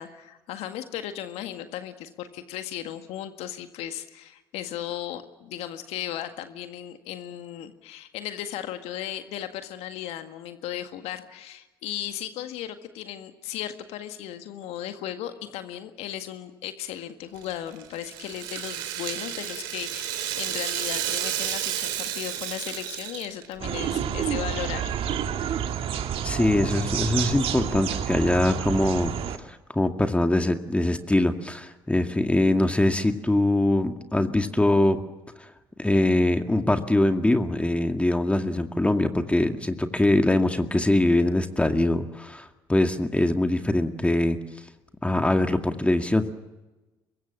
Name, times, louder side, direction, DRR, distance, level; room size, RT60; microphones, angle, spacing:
voice 1, 0.0-24.9, left 11 dB, 65° left, 8 dB, 1.8 m, -36 dB
Rattle (instrument), 17.4-23.6, right 11 dB, 75° right, 3.5 m, -31 dB
sound 1, 23.6-29.4, right 9 dB, 55° right, 1.9 m, -29 dB
voice 2, 26.2-29.1 29.5-35.0 35.8-44.4 45.0-46.2, left 1 dB, 10° left, 6 dB, 2.2 m, -23 dB
25.0 x 22.0 x 7.5 m, 1.1 s
hypercardioid pair, 55°, 11 cm